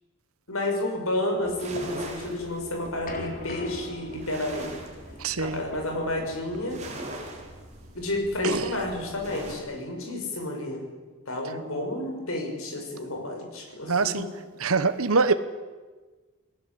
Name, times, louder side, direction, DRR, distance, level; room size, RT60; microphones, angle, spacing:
voice 1, 0.5-4.8 5.4-6.8 7.9-10.8 11.3-14.3, left 1 dB, 75° left, 3 dB, 6.3 m, -31 dB
sound 1, 1.4-9.5, right 1 dB, 30° right, 4.7 m, -42 dB
sound 2, 2.4-9.3, left 1 dB, 40° left, 3.3 m, -43 dB
voice 2, 5.2-5.6 8.4-8.7 13.9-14.3 14.6-15.3, right 4 dB, 80° right, 11 dB, 1.1 m, -24 dB
28.5 x 18.5 x 8.5 m, 1.3 s
head